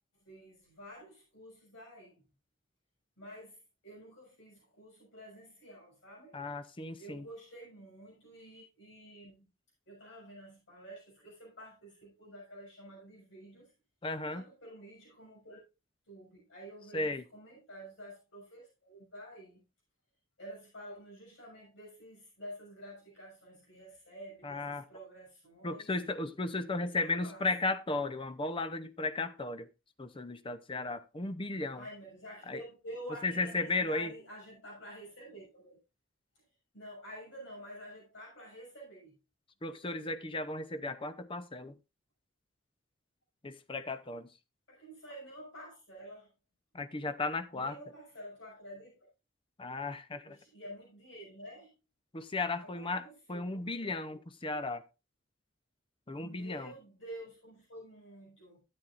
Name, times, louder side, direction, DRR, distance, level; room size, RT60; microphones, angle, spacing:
voice 1, 0.2-2.2 3.2-6.4 7.0-9.4 9.9-13.7 14.3-15.6 16.1-19.6 20.4-25.9 27.0-27.4 31.7-35.8 36.7-39.2 44.7-46.3 47.5-49.1 50.3-51.8 52.6-53.9 56.1-58.6, equal, 70° left, 6.7 m, -50 dB
voice 2, 6.3-7.2 14.0-14.4 16.9-17.2 24.4-24.8 25.6-29.7 30.0-31.9 32.5-32.6 33.2-34.1 39.6-41.8 43.4-44.3 46.7-47.8 49.6-50.4 52.1-54.8 56.1-56.7, left 3 dB, 25° left, 0.7 m, -35 dB
12.5 x 8.7 x 2.5 m
head